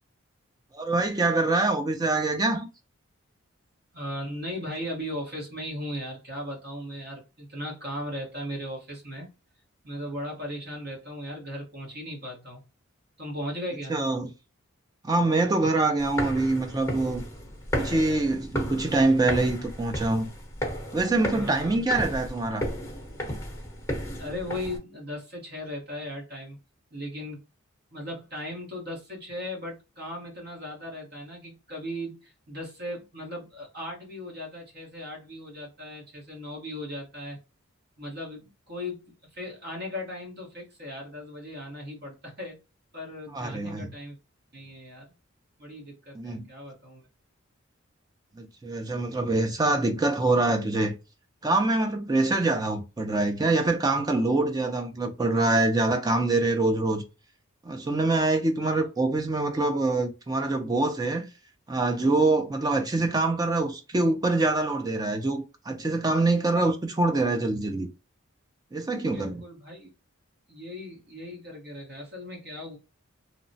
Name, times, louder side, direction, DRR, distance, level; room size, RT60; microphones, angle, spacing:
voice 1, 0.7-2.7 13.9-14.3 15.0-17.2 17.8-20.3 20.9-22.7 43.3-43.9 46.1-46.5 48.4-50.9 51.4-57.0 57.6-61.3 61.7-67.9 68.7-69.4, right 2 dB, 20° right, 0.3 m, -25 dB
voice 2, 3.9-9.3 9.8-12.6 13.2-14.0 21.3-21.8 24.2-26.6 26.9-27.4 27.9-37.4 38.0-42.6 42.9-44.2 44.5-45.1 45.6-47.1 58.6-58.9 68.9-69.9 70.5-72.8, left 1 dB, 45° right, 1.0 m, -37 dB
sound 1, 16.0-24.8, equal, 15° left, 0.9 m, -34 dB
2.9 x 2.0 x 2.6 m
head